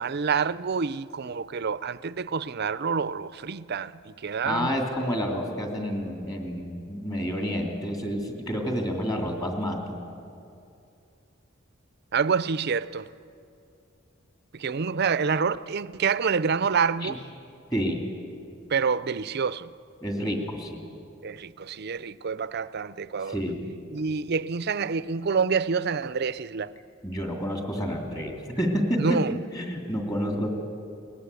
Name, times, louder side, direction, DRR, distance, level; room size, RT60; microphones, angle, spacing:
voice 1, 0.0-4.8 12.1-13.1 14.5-17.2 18.7-19.7 21.2-23.4 23.9-26.7 29.0-29.4, right 5 dB, 55° right, 0.5 m, -27 dB
voice 2, 4.4-10.0 17.0-17.2 17.7-18.0 20.0-20.9 23.2-23.7 27.0-29.2 29.5-30.5, equal, 20° left, 2.8 m, -29 dB
21.5 x 20.0 x 8.4 m
head